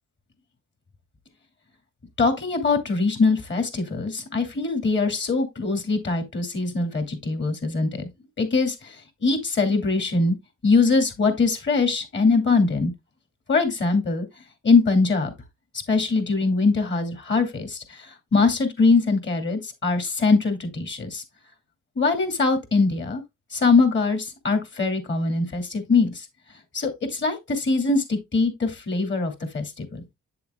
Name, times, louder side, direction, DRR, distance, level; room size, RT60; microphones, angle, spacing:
voice 1, 2.2-8.1 8.4-10.4 10.6-12.9 13.5-14.3 14.6-15.3 15.9-21.2 22.0-23.2 23.5-26.3 26.7-30.0, left 4 dB, 40° left, 2.5 m, -22 dB
8.4 x 7.0 x 2.3 m
cardioid pair, 90°, 30 cm